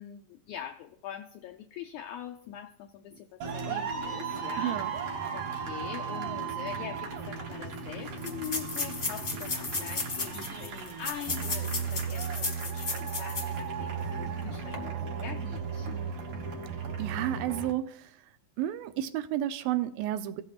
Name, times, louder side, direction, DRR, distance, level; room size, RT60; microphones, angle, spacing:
voice 1, 0.0-16.0, left 10 dB, 85° left, 5 dB, 1.7 m, -43 dB
sound 1, 3.4-17.7, right 6 dB, 70° right, 3.1 m, -35 dB
voice 2, 4.6-4.9 17.0-18.1 18.6-20.4, right 12 dB, 90° right, 10 dB, 2.5 m, -31 dB
sound 2, 7.1-7.2 7.4-7.5 8.2-13.6 14.0-14.1 14.6-14.7, left 3 dB, 40° left, 1.0 m, -35 dB
17.0 x 6.9 x 2.4 m, 0.68 s
omnidirectional pair, 4.1 m